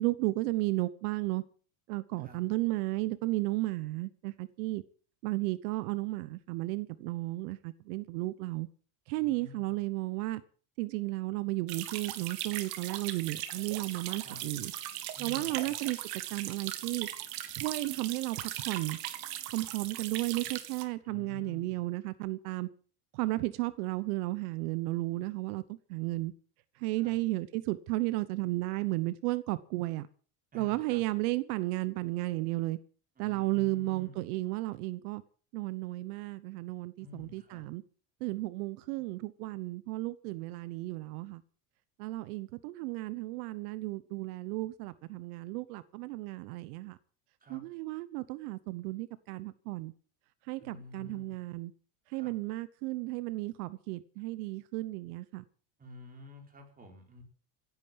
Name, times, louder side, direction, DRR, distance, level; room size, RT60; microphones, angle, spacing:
voice 1, 0.0-1.4 1.9-4.8 5.2-8.7 9.1-10.4 10.8-14.7 15.2-17.1 17.5-19.0 19.5-22.7 23.1-26.3 26.8-30.1 30.5-32.8 33.2-35.2 35.5-37.8 38.2-41.4 42.0-47.0 47.5-49.9 50.5-51.7 52.1-55.4, right 19 dB, 80° right, 1.1 m, -34 dB
voice 2, 9.1-9.8 14.2-14.4 15.1-15.7 21.0-21.8 27.0-27.2 30.5-31.0 33.2-34.2 37.0-37.7 47.4-47.6 50.6-51.4 52.1-52.3 55.8-57.2, equal, 20° right, 4.8 m, -50 dB
sound 1, 11.7-20.8, right 13 dB, 55° right, 2.1 m, -39 dB
16.0 x 9.4 x 7.6 m
cardioid pair, 155°, 44 cm